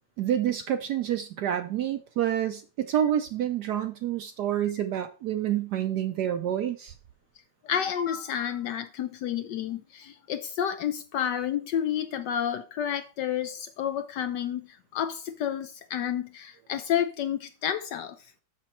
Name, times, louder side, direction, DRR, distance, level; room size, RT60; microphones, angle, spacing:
voice 1, 0.2-6.9, right 10 dB, 70° right, 1.0 m, -28 dB
voice 2, 7.6-18.2, left 9 dB, 70° left, 1.0 m, -30 dB
6.8 x 6.3 x 4.3 m
omnidirectional pair, 2.2 m